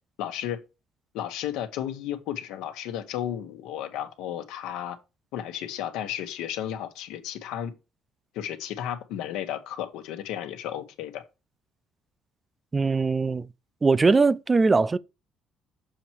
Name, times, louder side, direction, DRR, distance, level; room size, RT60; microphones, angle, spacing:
voice 1, 0.2-0.6 1.1-5.0 5.3-7.7 8.3-11.2, left 10 dB, 85° left, 1.1 m, -33 dB
voice 2, 12.7-13.5 13.8-15.0, right 4 dB, 25° right, 0.4 m, -21 dB
7.0 x 4.5 x 4.5 m
cardioid pair, 100°, 0 cm